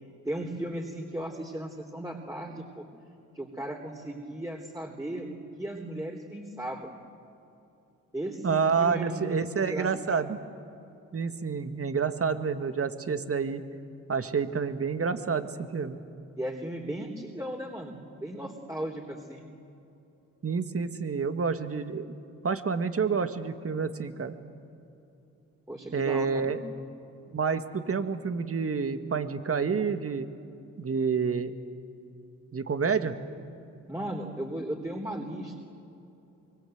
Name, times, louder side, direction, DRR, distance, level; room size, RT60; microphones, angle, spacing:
voice 1, 0.2-2.8 3.3-6.9 8.1-10.2 16.4-19.5 25.7-26.6 33.9-35.5, right 1 dB, 10° right, 1 dB, 3.8 m, -36 dB
voice 2, 8.4-10.4 11.1-13.6 14.1-16.0 20.4-22.1 22.4-24.3 25.9-26.6 27.3-30.3 30.8-31.5 32.5-33.1, right 5 dB, 40° right, 9 dB, 2.0 m, -28 dB
24.5 x 24.0 x 8.1 m, 2.9 s
hypercardioid pair, 50°, 35 cm